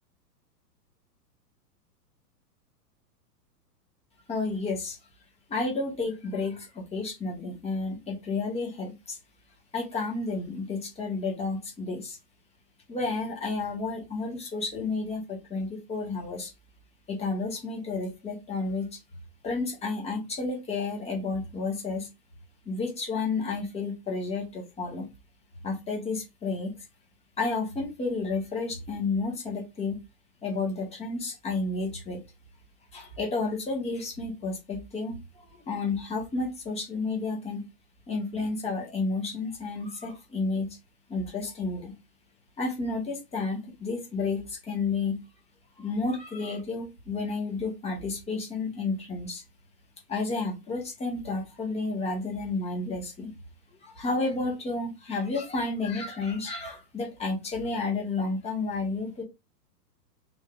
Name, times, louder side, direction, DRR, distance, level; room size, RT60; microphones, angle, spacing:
voice 1, 4.3-5.0 5.5-9.2 9.7-12.2 12.9-16.5 17.1-19.0 19.4-22.1 22.6-25.1 25.6-26.7 27.4-30.0 30.4-32.2 32.9-35.2 35.5-37.6 38.1-40.8 41.1-41.9 42.6-45.2 45.8-49.4 50.1-53.3 53.8-59.2, left 3 dB, 15° left, -1 dB, 1.4 m, -31 dB
3.7 x 2.8 x 3.7 m, 0.24 s
hypercardioid pair, 135°, 48 cm